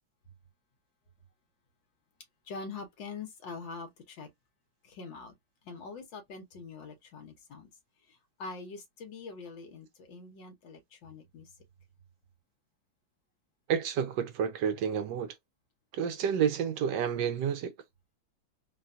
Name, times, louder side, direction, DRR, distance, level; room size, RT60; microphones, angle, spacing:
voice 1, 2.5-4.3 4.8-5.3 5.6-7.7 8.1-11.5, left 4 dB, 70° left, 1.8 m, -44 dB
voice 2, 13.7-15.3 15.9-17.7, right 8 dB, 70° right, 1.3 m, -30 dB
3.9 x 2.2 x 2.6 m
omnidirectional pair, 2.2 m